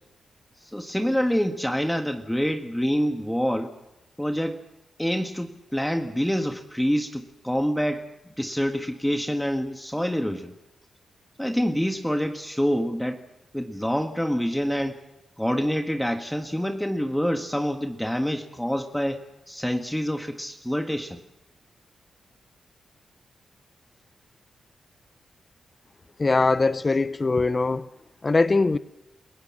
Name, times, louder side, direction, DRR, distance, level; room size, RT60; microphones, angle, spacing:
voice 1, 0.6-3.7 4.2-4.6 5.0-8.1 8.4-10.5 11.4-13.2 13.5-15.0 15.4-21.2, equal, 5° left, 1.6 m, -26 dB
voice 2, 26.2-27.9 28.2-28.8, left 3 dB, 35° left, 0.8 m, -21 dB
28.0 x 16.0 x 7.5 m
cardioid pair, 55°, 0 cm